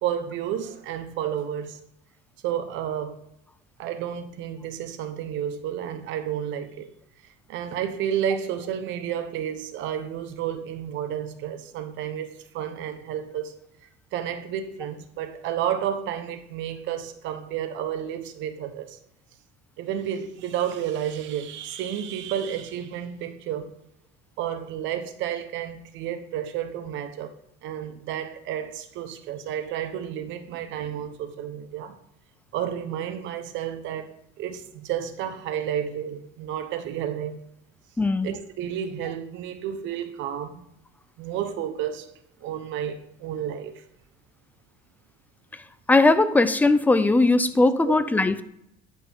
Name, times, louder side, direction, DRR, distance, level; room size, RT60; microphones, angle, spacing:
voice 1, 0.0-1.8 2.4-3.3 3.8-6.9 7.5-13.5 14.1-19.0 19.8-23.7 24.4-27.3 27.6-32.0 32.5-37.4 38.2-40.7 41.2-42.1 42.4-43.8 47.9-48.0, right 9 dB, 70° right, 1.0 m, -31 dB
voice 2, 38.0-38.3 45.9-48.4, left 2 dB, 10° left, 0.5 m, -19 dB
10.5 x 5.5 x 3.6 m
cardioid pair, 125°, 20 cm